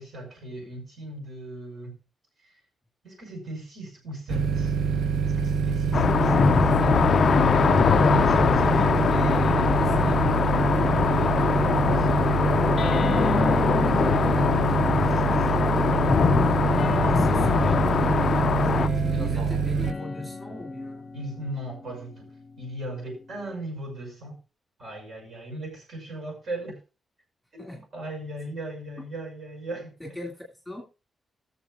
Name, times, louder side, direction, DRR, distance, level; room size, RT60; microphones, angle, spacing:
voice 1, 0.0-1.9 2.4-2.6 3.0-4.7 5.4-6.5 7.8-10.5 11.0-12.7 13.7-17.8 18.5-19.6 21.1-22.3 22.6-24.4 24.8-26.8 27.5-29.9, right 2 dB, 50° right, 5.9 m, -38 dB
sound 1, 4.3-19.9, right 6 dB, 85° right, 0.5 m, -25 dB
sound 2, 5.9-18.9, left 6 dB, 45° left, 0.4 m, -22 dB
voice 2, 6.4-7.2 9.7-10.5 17.0-17.4 17.6-18.1 19.2-21.0 27.6-27.8 30.2-30.8, left 1 dB, 5° left, 2.1 m, -39 dB
sound 3, 12.8-16.1 16.7-23.5, left 4 dB, 30° left, 0.9 m, -35 dB
20.0 x 7.1 x 2.4 m
wide cardioid pair, 170°, 0 cm